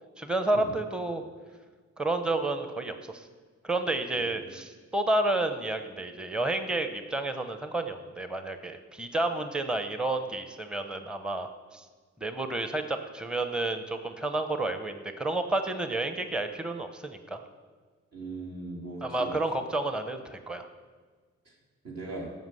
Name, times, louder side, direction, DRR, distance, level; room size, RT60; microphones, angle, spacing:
voice 1, 0.2-1.2 2.0-3.3 3.6-11.8 12.2-17.4 19.0-20.7, right 2 dB, 5° right, 8 dB, 0.8 m, -30 dB
voice 2, 18.1-19.4 21.4-21.5 21.8-22.3, right 2 dB, 60° right, -4 dB, 3.3 m, -39 dB
13.0 x 5.8 x 7.8 m, 1.5 s
cardioid pair, 95°, 29 cm